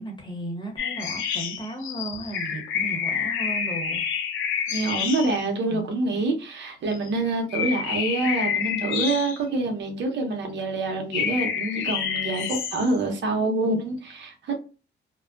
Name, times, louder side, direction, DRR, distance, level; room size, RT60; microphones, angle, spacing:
voice 1, 0.0-4.0 5.6-5.9, right 1 dB, 25° left, 1.0 m, -35 dB
sound 1, 0.8-5.4 6.9-7.2 7.5-9.7 11.1-13.0, left 7 dB, 90° left, 0.5 m, -28 dB
voice 2, 4.7-14.6, right 2 dB, 65° right, 0.8 m, -26 dB
2.3 x 2.2 x 2.5 m
cardioid pair, 90°, 20 cm